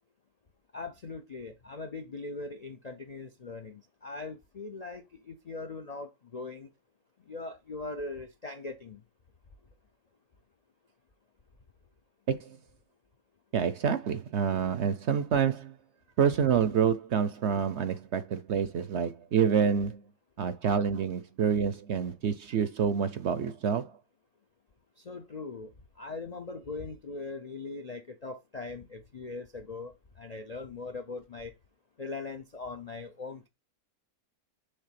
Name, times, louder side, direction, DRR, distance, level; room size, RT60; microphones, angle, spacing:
voice 1, 0.7-6.7 7.3-9.0 25.0-31.5 32.0-33.5, left 3 dB, 50° left, 0.4 m, -40 dB
voice 2, 13.5-15.7 16.2-20.0 20.4-23.9, right 7 dB, 60° right, 0.8 m, -27 dB
6.7 x 3.4 x 5.8 m
omnidirectional pair, 1.6 m